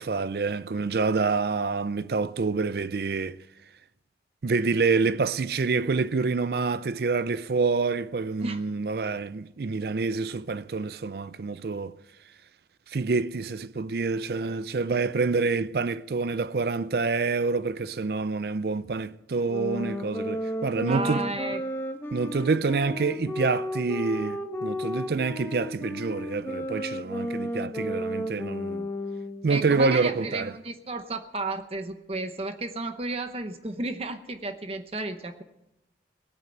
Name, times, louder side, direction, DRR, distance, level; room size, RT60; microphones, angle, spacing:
voice 1, 0.0-3.4 4.4-12.0 12.9-21.2 22.1-28.9 29.4-30.5, right 4 dB, 60° right, 0.4 m, -27 dB
sound 1, 19.5-29.5, equal, 15° left, 1.1 m, -33 dB
voice 2, 20.9-21.6 29.5-35.4, right 2 dB, 35° right, 0.8 m, -33 dB
18.5 x 9.1 x 7.9 m
head